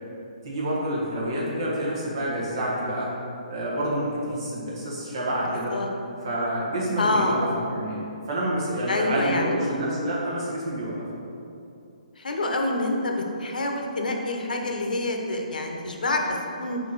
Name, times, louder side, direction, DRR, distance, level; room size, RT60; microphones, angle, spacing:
voice 1, 0.4-3.1 3.5-5.7 6.2-11.1, right 1 dB, 35° right, -6 dB, 1.4 m, -28 dB
voice 2, 7.0-7.4 8.9-9.5 12.2-16.8, left 2 dB, 85° left, 2 dB, 0.9 m, -27 dB
4.7 x 4.1 x 5.8 m, 2.7 s
hypercardioid pair, 180°, 4 cm